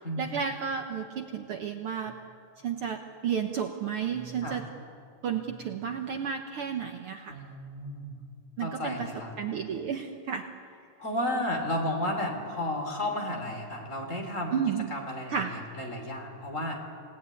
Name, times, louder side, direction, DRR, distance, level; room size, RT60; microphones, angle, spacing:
voice 1, 0.2-2.2 2.6-4.6 5.2-7.4 8.6-9.1 9.4-10.5 14.5-14.9 15.3-15.5, right 7 dB, 85° right, 5 dB, 1.2 m, -32 dB
voice 2, 7.3-8.2 8.6-9.3 11.0-14.6 14.9-16.8, left 1 dB, 20° left, 2 dB, 3.5 m, -33 dB
28.5 x 18.0 x 9.7 m, 2.4 s
omnidirectional pair, 4.0 m